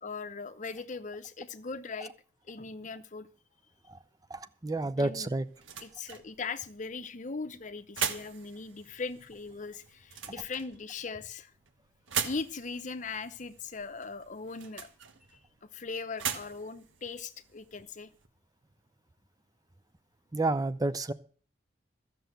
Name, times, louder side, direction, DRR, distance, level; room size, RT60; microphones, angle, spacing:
voice 1, 0.0-2.1 2.4-3.3 5.0-5.3 5.8-11.5 12.2-14.9 15.6-18.1, left 4 dB, 40° left, 0.7 m, -39 dB
voice 2, 4.3-5.5 20.3-21.1, right 2 dB, 20° right, 0.5 m, -30 dB
sound 1, 4.8-18.3, right 7 dB, 90° right, 1.4 m, -41 dB
13.5 x 6.8 x 7.8 m
head